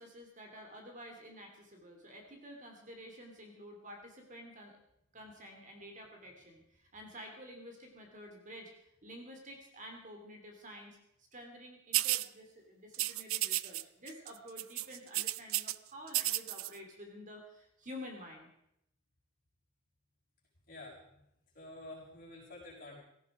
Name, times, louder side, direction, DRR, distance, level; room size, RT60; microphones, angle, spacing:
voice 1, 0.0-4.7 5.1-8.7 9.0-11.0 11.3-18.5, equal, 35° right, 2 dB, 2.8 m, -50 dB
sound 1, 11.9-12.3 12.9-13.8 14.1-14.3 14.6-15.7 16.1-16.7, right 17 dB, 70° right, 0.5 m, -32 dB
voice 2, 20.7-21.2 21.5-23.0, left 2 dB, 40° left, -5 dB, 6.3 m, -49 dB
17.5 x 14.5 x 4.9 m, 0.78 s
head